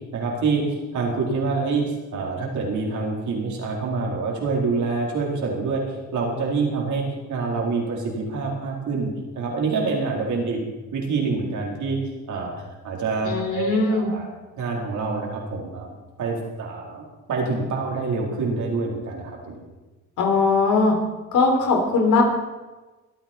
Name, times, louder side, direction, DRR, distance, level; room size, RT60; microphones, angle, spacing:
voice 1, 0.1-5.8 6.1-9.1 9.4-10.6 10.9-12.0 12.3-12.5 12.8-14.3 14.6-17.0 17.3-19.6, right 4 dB, 70° right, -1 dB, 4.2 m, -26 dB
voice 2, 13.2-14.1 20.2-20.9 21.3-22.2, left 4 dB, 80° left, 1 dB, 3.9 m, -20 dB
24.0 x 9.1 x 4.5 m, 1.2 s
cardioid pair, 90°, 30 cm